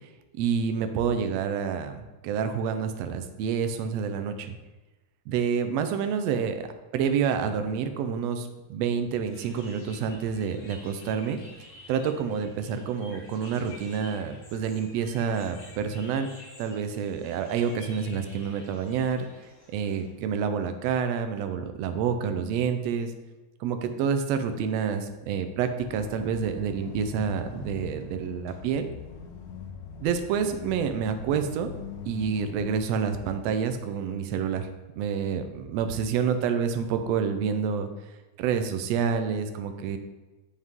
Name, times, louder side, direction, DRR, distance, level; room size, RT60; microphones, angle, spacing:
voice 1, 0.4-4.5 5.3-6.7 6.9-11.4 11.9-16.3 16.6-19.2 19.7-23.1 23.6-28.9 30.0-31.7 32.1-34.7 35.0-37.9 38.4-40.0, right 7 dB, 75° right, 8 dB, 1.6 m, -28 dB
sound 1, 9.3-20.1, left 2 dB, 50° left, 0.9 m, -50 dB
sound 2, 25.8-32.8, left 5 dB, 80° left, 2.3 m, -42 dB
7.7 x 6.3 x 3.6 m, 1.2 s
omnidirectional pair, 3.4 m